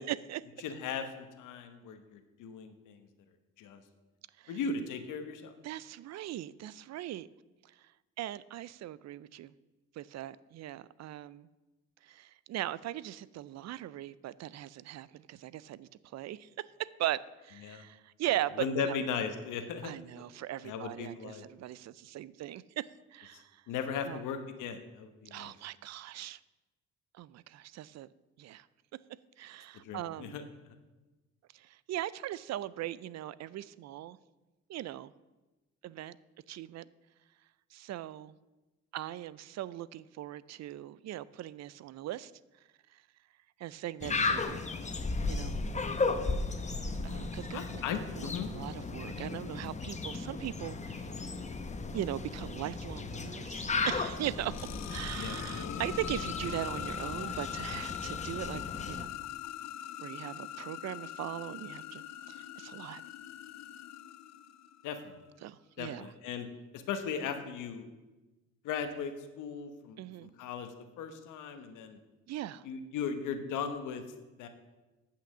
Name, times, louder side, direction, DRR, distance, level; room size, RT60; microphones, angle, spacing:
voice 1, 0.0-0.4 4.4-4.6 5.6-7.3 8.2-9.5 10.0-11.5 12.0-19.0 19.8-23.5 24.1-24.2 25.3-26.4 27.1-28.1 28.4-28.7 29.4-30.4 31.5-34.2 34.7-35.1 35.8-36.2 36.5-36.9 37.7-38.4 38.9-42.3 42.9-43.0 43.6-44.6 45.3-45.6 47.0-47.8 48.2-51.3 51.9-58.6 58.9-59.1 60.0-63.0 65.4-66.1 70.0-70.3 72.3-72.6, right 13 dB, 60° right, 19 dB, 0.4 m, -39 dB
voice 2, 0.6-3.0 3.6-3.8 4.5-5.5 17.6-17.8 18.6-20.2 20.6-21.4 23.7-25.5 29.8-30.4 47.5-48.5 55.2-55.4 64.8-65.1 65.8-66.5 66.7-67.9 68.6-70.7 71.0-72.0 72.6-74.0 74.4-74.5, left 6 dB, 90° left, 7 dB, 1.0 m, -37 dB
sound 1, 44.0-59.0, left 3 dB, 25° left, 0.8 m, -35 dB
sound 2, 54.2-64.9, left 11 dB, 60° left, 0.6 m, -42 dB
8.6 x 5.8 x 7.1 m, 1.1 s
cardioid pair, 90°, 30 cm